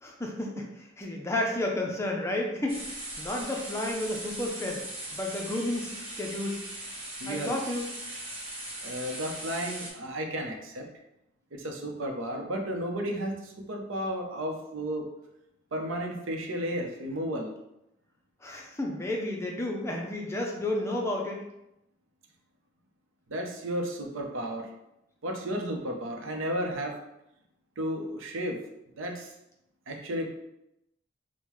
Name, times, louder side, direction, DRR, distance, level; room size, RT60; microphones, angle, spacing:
voice 1, 0.0-4.9 5.1-5.9 6.2-6.6 7.3-7.9 18.4-21.4, left 1 dB, 15° left, 0 dB, 0.4 m, -31 dB
sound 1, 2.7-9.9, right 1 dB, 30° right, 1.3 m, -39 dB
voice 2, 7.2-7.6 8.8-10.8 11.5-15.0 15.7-17.5 23.3-24.7 25.2-26.9 27.8-28.6 29.0-29.3 29.9-30.3, equal, 85° right, 2 dB, 0.7 m, -33 dB
5.4 x 2.1 x 3.1 m, 0.86 s
head